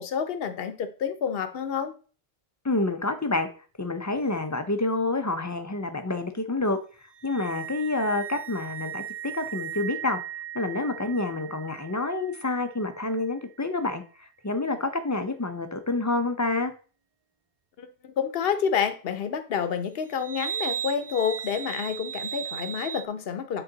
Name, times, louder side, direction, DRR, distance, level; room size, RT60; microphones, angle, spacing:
voice 1, 0.0-1.9 17.8-23.6, left 7 dB, 70° left, 9 dB, 1.0 m, -29 dB
voice 2, 2.6-3.5 3.8-6.8 7.2-10.2 10.5-14.0 14.4-16.7, left 2 dB, 25° left, 8 dB, 0.5 m, -28 dB
sound 1, 7.1-13.3 20.1-23.1, right 9 dB, 35° right, 0.4 m, -37 dB
8.1 x 3.9 x 3.9 m, 0.39 s
omnidirectional pair, 1.1 m